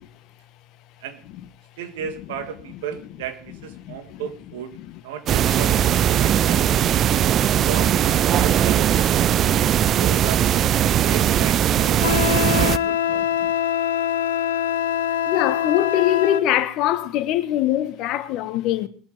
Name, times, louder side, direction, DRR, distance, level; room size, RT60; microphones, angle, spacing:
voice 1, 1.8-4.8 5.0-7.1 7.7-9.4 9.9-10.5 10.9-13.3, right 8 dB, 80° right, 1.8 m, -35 dB
voice 2, 3.8-4.2 7.1-7.3 9.4-9.6 13.2-13.5 15.2-18.9, left 12 dB, 60° left, 1.3 m, -23 dB
sound 1, 5.3-12.8, right 10 dB, 45° right, 0.5 m, -19 dB
Wind instrument woodwind instrument, 12.0-16.5, left 10 dB, 90° left, 0.7 m, -23 dB
21.0 x 7.6 x 4.8 m
hypercardioid pair, 90°, 0 cm